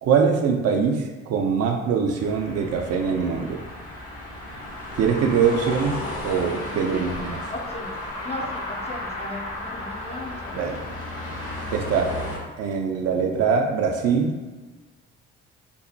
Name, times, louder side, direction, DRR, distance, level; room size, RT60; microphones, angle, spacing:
voice 1, 0.0-3.6 5.0-7.4 10.5-10.8 11.7-12.2 12.6-14.4, right 6 dB, 50° right, 3 dB, 0.4 m, -23 dB
sound 1, 2.2-12.4, left 1 dB, 45° left, 0.8 m, -34 dB
voice 2, 7.5-8.0 8.2-10.7, left 2 dB, 20° left, 1 dB, 0.4 m, -36 dB
3.0 x 2.0 x 2.6 m, 1.3 s
hypercardioid pair, 50°, 33 cm